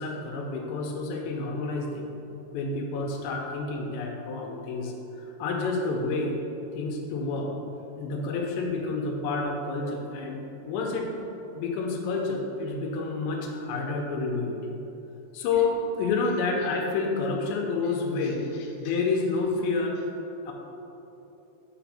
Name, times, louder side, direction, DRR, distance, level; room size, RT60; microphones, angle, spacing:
voice 1, 0.0-2.1 2.5-6.4 6.8-7.5 8.0-11.1 11.5-14.6 15.3-20.0 20.5-20.6, left 3 dB, 85° left, 1 dB, 2.9 m, -29 dB
6.0 x 5.4 x 5.7 m, 3.0 s
omnidirectional pair, 5.2 m